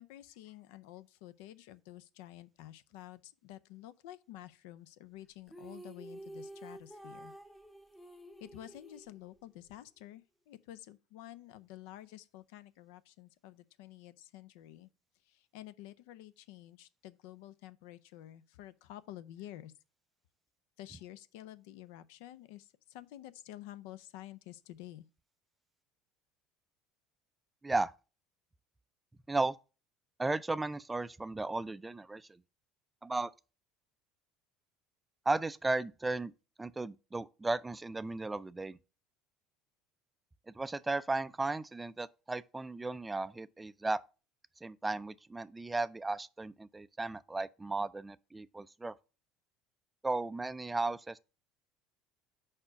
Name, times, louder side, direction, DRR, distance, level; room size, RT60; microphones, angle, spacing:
voice 1, 0.0-7.3 8.4-14.9 15.2-19.7 20.8-25.1, left 13 dB, 80° left, 0.4 m, -50 dB
sound 1, 5.5-9.7, right 1 dB, 5° left, 0.7 m, -50 dB
voice 2, 30.2-32.4 33.0-33.3 35.3-36.3 36.6-38.8 40.5-44.0 44.6-48.9 50.0-51.2, right 2 dB, 15° right, 0.3 m, -35 dB
4.9 x 4.4 x 5.6 m
supercardioid pair, 105°, 0 cm